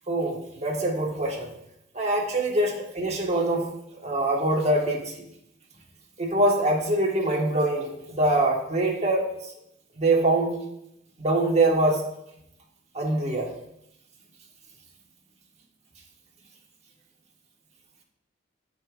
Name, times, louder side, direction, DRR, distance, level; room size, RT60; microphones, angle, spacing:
voice 1, 0.1-1.5 1.9-3.6 4.0-5.1 6.2-9.2 10.0-10.5 11.2-12.0 12.9-13.5, right 2 dB, 35° right, -2 dB, 1.6 m, -24 dB
13.5 x 5.5 x 2.5 m, 0.80 s
head